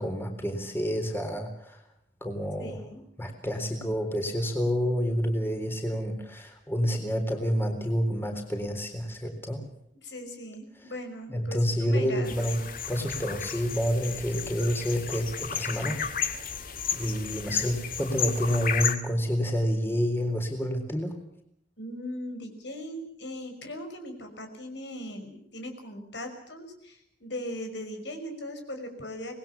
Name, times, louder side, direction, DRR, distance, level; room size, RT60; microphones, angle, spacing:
voice 1, 0.0-1.8 2.2-2.8 3.2-9.6 10.8-10.9 11.3-16.0 16.9-21.2, equal, 15° left, 4 dB, 3.9 m, -28 dB
voice 2, 2.6-3.0 9.9-11.6 11.9-12.4 21.8-27.0 27.2-29.3, left 1 dB, 75° left, 5 dB, 5.8 m, -39 dB
sound 1, 12.2-19.0, left 7 dB, 50° left, 2.2 m, -33 dB
26.0 x 20.5 x 7.2 m, 0.70 s
head